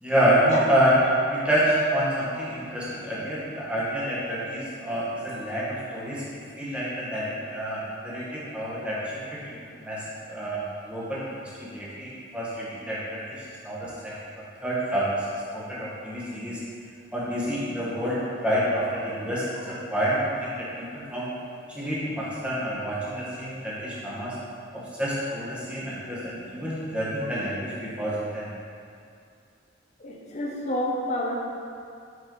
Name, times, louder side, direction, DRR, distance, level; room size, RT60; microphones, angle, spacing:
voice 1, 0.0-1.0 1.3-6.2 6.6-9.2 9.8-10.0 10.3-14.1 14.6-15.1 15.5-16.6 17.1-21.3 21.7-24.3 24.7-28.5, equal, 5° right, -8 dB, 1.2 m, -28 dB
voice 2, 30.0-31.5, left 1 dB, 35° left, -2 dB, 0.7 m, -29 dB
5.4 x 5.1 x 3.8 m, 2.4 s
head